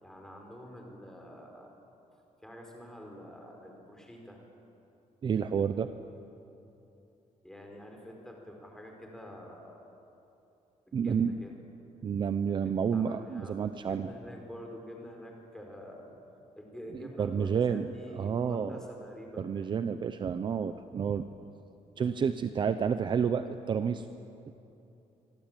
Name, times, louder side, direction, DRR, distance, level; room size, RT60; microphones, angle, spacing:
voice 1, 0.0-1.7 2.4-4.4 7.4-9.8 10.9-11.5 12.9-16.1 16.5-19.7 22.0-22.2, equal, 5° left, 1 dB, 4.5 m, -47 dB
voice 2, 5.2-5.9 10.9-11.4 12.0-14.1 17.2-17.9 18.1-18.7 19.4-21.3 22.0-24.0, right 7 dB, 35° right, 10 dB, 0.7 m, -30 dB
25.5 x 25.0 x 9.1 m, 2.8 s
cardioid pair, 180°, 13 cm